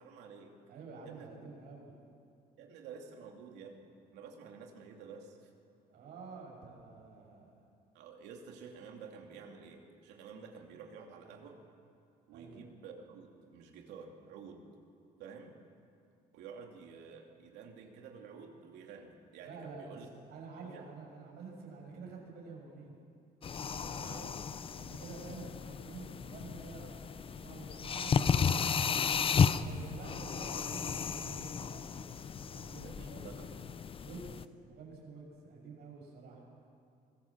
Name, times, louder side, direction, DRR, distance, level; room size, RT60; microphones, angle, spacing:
voice 1, 0.0-0.5 1.0-1.3 2.6-5.5 7.9-11.6 12.3-14.7 15.2-15.6 16.3-20.1 20.6-20.9 23.9-24.5 32.8-33.5, right 5 dB, 90° right, 2 dB, 2.8 m, -50 dB
voice 2, 0.7-2.0 5.9-7.5 12.3-12.6 19.4-23.0 23.5-24.0 24.7-33.5 34.0-34.4 34.6-36.4, right 4 dB, 75° right, -1 dB, 6.7 m, -49 dB
sound 1, 23.4-34.5, left 6 dB, 35° left, 0.7 m, -34 dB
24.0 x 17.5 x 7.4 m, 2.5 s
cardioid pair, 110°, 17 cm